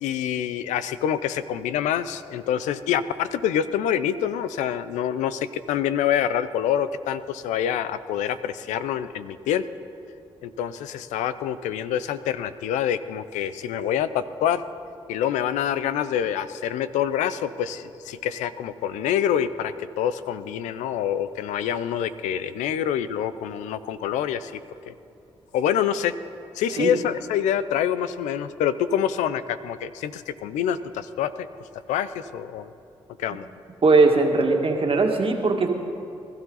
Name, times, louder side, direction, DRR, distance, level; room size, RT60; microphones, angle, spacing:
voice 1, 0.0-9.6 10.4-14.6 15.1-24.5 24.9-25.0 25.5-26.1 26.6-31.5 31.9-32.7 33.2-33.5, left 9 dB, 85° left, 14 dB, 0.5 m, -26 dB
voice 2, 33.8-35.7, right 3 dB, 50° right, 2 dB, 2.0 m, -19 dB
20.0 x 13.0 x 4.0 m, 2.5 s
supercardioid pair, 45°, 12 cm